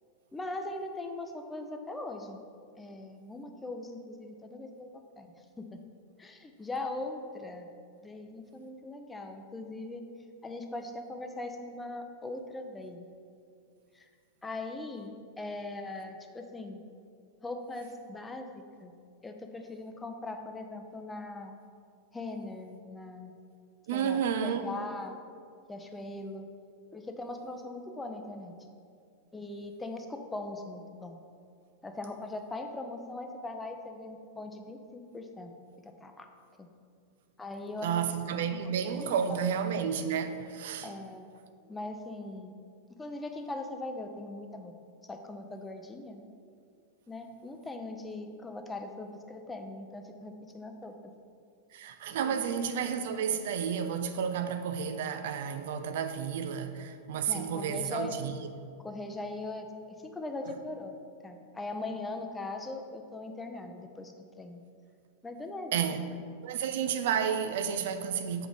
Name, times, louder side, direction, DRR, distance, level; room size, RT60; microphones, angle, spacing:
voice 1, 0.3-2.4 2.8-5.8 6.2-7.7 8.0-10.0 10.4-13.1 13.9-14.1 14.4-16.8 17.4-18.5 18.8-18.9 19.2-21.5 22.1-23.3 23.9-25.2 25.7-26.5 26.9-28.5 29.3-31.2 31.8-35.5 35.8-36.3 36.6-36.7 37.4-38.1 38.5-38.6 39.0-39.4 40.8-41.3 41.7-42.5 42.9-46.2 47.1-50.9 52.2-52.4 57.3-58.2 58.8-59.7 60.0-60.9 61.2-64.6 65.2-65.8, left 2 dB, 10° left, 5 dB, 0.6 m, -40 dB
voice 2, 23.9-24.7 37.8-40.9 51.7-58.3 65.7-66.0 66.4-68.5, right 7 dB, 55° right, 8 dB, 0.5 m, -31 dB
6.0 x 4.7 x 5.3 m, 2.3 s
figure-of-eight pair, 90°, 0 cm